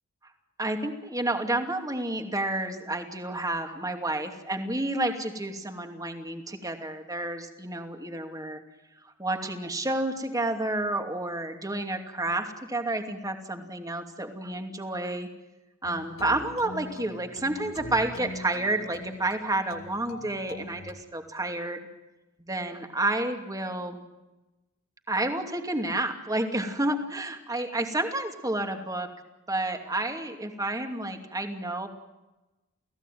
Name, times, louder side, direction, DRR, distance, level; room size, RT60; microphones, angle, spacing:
voice 1, 0.6-8.6 9.0-15.3 15.8-21.9 22.4-24.0 25.1-29.1 29.5-31.9, right 2 dB, 15° right, 5 dB, 2.6 m, -30 dB
sound 1, 15.8-20.9, left 2 dB, 70° left, 2.1 m, -42 dB
30.0 x 17.0 x 9.3 m, 1.1 s
head